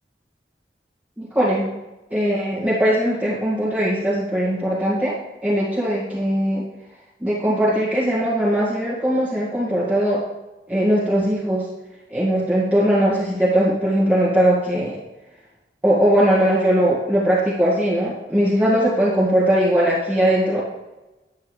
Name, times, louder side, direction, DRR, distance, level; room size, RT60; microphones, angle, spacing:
voice 1, 1.2-1.7 2.1-5.1 5.4-6.6 7.2-10.2 10.7-11.6 12.1-15.0 15.8-20.6, equal, 10° right, -9 dB, 2.2 m, -20 dB
10.5 x 8.4 x 3.5 m, 1.1 s
head